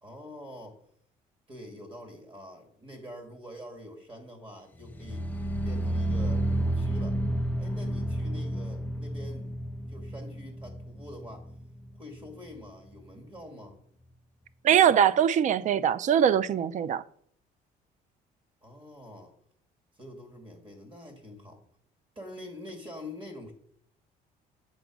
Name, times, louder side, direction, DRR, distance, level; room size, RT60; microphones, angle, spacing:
voice 1, 0.0-0.8 1.5-5.3 5.6-7.2 7.6-9.5 9.9-11.5 12.0-13.8 18.6-19.3 20.0-21.6 22.2-23.5, left 1 dB, 30° right, 2.0 m, -45 dB
sound 1, 4.8-11.9 12.2-12.6 13.0-13.1, right 1 dB, 10° left, 0.5 m, -31 dB
voice 2, 14.6-17.0, right 9 dB, 45° right, 0.4 m, -22 dB
7.9 x 3.9 x 6.0 m
cardioid pair, 110°, 17 cm